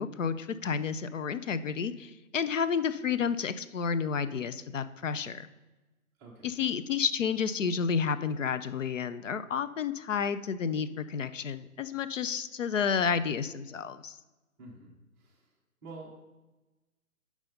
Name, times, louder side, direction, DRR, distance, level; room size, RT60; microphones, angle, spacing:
voice 1, 0.0-5.5 6.4-14.2, left 6 dB, 60° left, 12 dB, 0.5 m, -31 dB
voice 2, 6.2-6.7 14.6-15.5 15.8-16.1, right 3 dB, 10° right, -3 dB, 0.6 m, -49 dB
7.6 x 4.8 x 5.4 m, 1.1 s
figure-of-eight pair, 135°, 43 cm